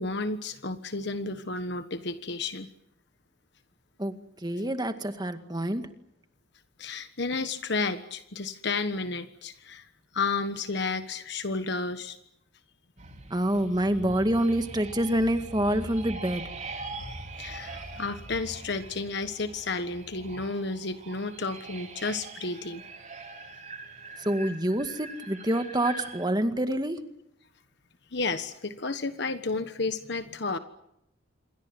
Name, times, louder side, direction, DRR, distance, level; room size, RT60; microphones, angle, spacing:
voice 1, 0.0-2.7 6.8-9.9 10.1-12.2 17.4-22.8 28.1-30.6, left 3 dB, 55° left, 10 dB, 1.3 m, -32 dB
voice 2, 4.4-5.8 13.3-16.5 24.2-27.0, right 1 dB, 20° right, 8 dB, 2.0 m, -27 dB
sound 1, 13.0-26.3, right 2 dB, 35° right, 3.5 m, -42 dB
27.5 x 23.5 x 8.0 m, 0.79 s
head